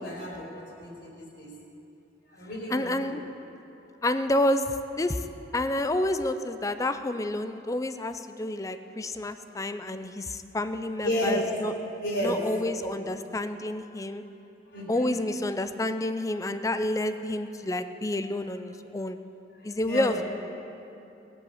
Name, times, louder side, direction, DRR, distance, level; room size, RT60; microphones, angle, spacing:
voice 1, 0.0-1.5 2.3-3.2 11.0-11.4 12.0-12.6 12.9-13.1 14.7-15.2 19.8-20.2, equal, 65° left, -3 dB, 4.0 m, -32 dB
voice 2, 2.7-3.2 4.0-5.2 5.5-11.7 12.2-14.2 14.9-19.2 19.6-20.2, left 1 dB, 20° left, 10 dB, 0.5 m, -29 dB
19.5 x 8.0 x 7.1 m, 2.9 s
head